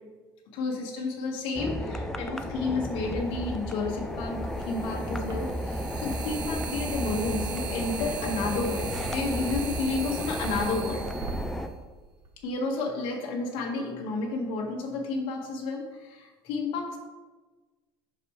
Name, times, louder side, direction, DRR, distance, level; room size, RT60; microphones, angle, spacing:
voice 1, 0.5-4.4 4.7-11.0 12.4-17.0, left 3 dB, 60° left, -1 dB, 1.6 m, -31 dB
sound 1, 1.6-11.7, equal, 5° left, 0.3 m, -33 dB
sound 2, 3.0-3.1 4.4-12.4, right 5 dB, 35° right, 0.8 m, -38 dB
7.9 x 6.1 x 3.2 m, 1.3 s
cardioid pair, 165°, 10 cm